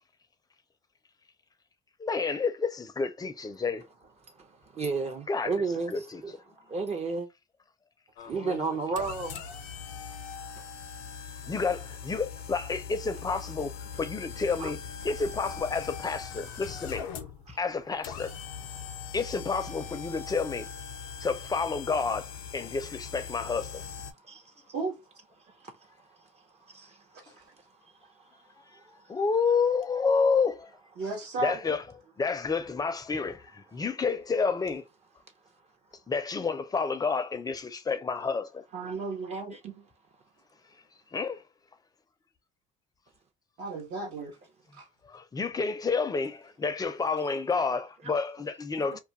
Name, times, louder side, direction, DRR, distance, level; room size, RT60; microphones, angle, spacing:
voice 1, 2.0-3.8 5.3-5.5 5.9-6.2 11.5-13.7 14.0-14.8 15.0-17.1 17.6-18.3 19.1-20.7 21.2-23.9 29.1-30.7 31.4-31.8 32.2-34.8 36.1-38.6 41.1-41.4 45.0-49.0, left 4 dB, 20° left, 0.5 m, -29 dB
voice 2, 4.3-7.3 8.2-9.6 10.5-10.7 14.6-14.7 17.5-17.6 18.8-18.9 21.1-21.3 24.1-24.7 25.4-27.5 27.8-29.1 39.3-39.6 48.0-48.1 48.8-49.0, right 4 dB, 35° right, 0.6 m, -35 dB
sound 1, 8.2-24.1, left 7 dB, 85° left, 0.5 m, -41 dB
voice 3, 31.0-31.6 38.7-39.9 43.6-44.4 44.7-44.9, right 3 dB, 65° right, 0.8 m, -34 dB
2.3 x 2.2 x 2.6 m
supercardioid pair, 80°, 19 cm